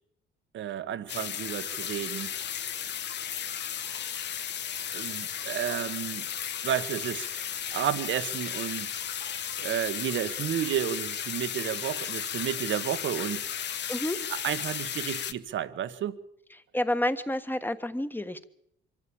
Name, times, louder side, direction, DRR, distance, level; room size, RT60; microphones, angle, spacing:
voice 1, 0.5-2.3 4.9-6.3 6.6-8.9 9.6-13.4 14.3-16.2, right 10 dB, 70° right, 1.3 m, -32 dB
sound 1, 1.1-15.3, left 9 dB, 60° left, 1.1 m, -34 dB
voice 2, 13.9-14.2 16.7-18.4, left 1 dB, 10° left, 1.4 m, -29 dB
24.5 x 13.5 x 8.8 m
cardioid pair, 90°, 20 cm